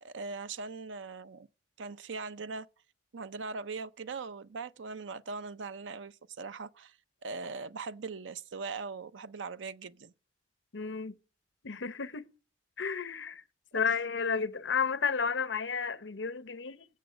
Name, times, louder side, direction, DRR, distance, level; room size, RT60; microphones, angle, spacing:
voice 1, 0.0-1.5 1.8-2.7 3.1-7.0 7.2-10.1 13.7-14.0, right 4 dB, 90° right, 0.6 m, -40 dB
voice 2, 10.7-11.1 11.6-12.2 12.8-13.4 13.7-16.9, left 5 dB, 80° left, 0.8 m, -32 dB
14.0 x 7.9 x 5.0 m
head